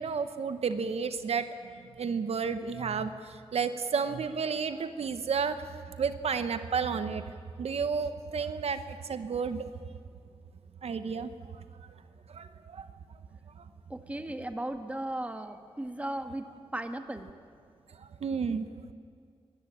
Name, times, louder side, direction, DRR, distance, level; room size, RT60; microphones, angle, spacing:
voice 1, 0.0-1.5 2.0-5.6 6.0-7.3 7.6-9.7 10.8-11.3 12.3-12.9 13.6-13.7 18.0-18.7, right 6 dB, 80° right, 10 dB, 1.1 m, -31 dB
voice 2, 13.9-17.3, right 1 dB, 15° right, 7 dB, 1.5 m, -36 dB
23.0 x 18.5 x 8.9 m, 2.2 s
wide cardioid pair, 115°, 10 cm